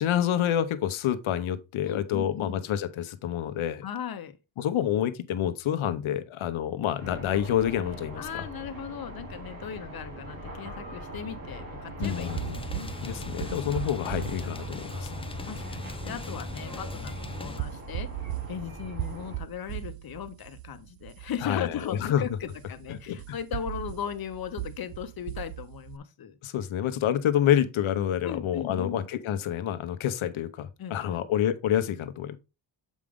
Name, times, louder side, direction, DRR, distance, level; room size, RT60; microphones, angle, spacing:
voice 1, 0.0-3.8 4.6-8.5 12.0-12.6 13.0-15.2 21.4-22.2 22.9-23.4 26.4-32.4, left 10 dB, 85° left, 0.9 m, -28 dB
voice 2, 1.8-2.6 3.8-4.4 8.2-12.3 12.7-13.9 14.4-14.5 15.4-18.1 18.5-26.4 28.2-29.1 30.8-31.2, left 8 dB, 50° left, 0.9 m, -38 dB
sound 1, 7.0-19.4, right 1 dB, 45° right, 2.9 m, -42 dB
sound 2, 12.0-17.6, left 2 dB, 10° left, 0.6 m, -38 dB
sound 3, 12.0-26.0, right 16 dB, 65° right, 0.5 m, -39 dB
7.4 x 5.1 x 3.6 m
cardioid pair, 135°, 47 cm